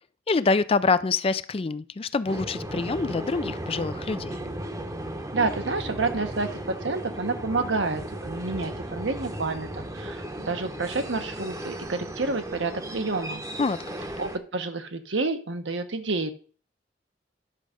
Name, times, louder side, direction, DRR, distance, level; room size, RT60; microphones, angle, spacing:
voice 1, 0.3-4.4 13.6-13.8, left 4 dB, 30° left, 14 dB, 0.4 m, -25 dB
sound 1, 2.3-14.4, right 1 dB, 20° right, 0.9 m, -35 dB
voice 2, 5.3-13.4 14.2-16.3, right 3 dB, 75° right, 8 dB, 1.1 m, -29 dB
10.5 x 6.3 x 5.1 m, 0.42 s
head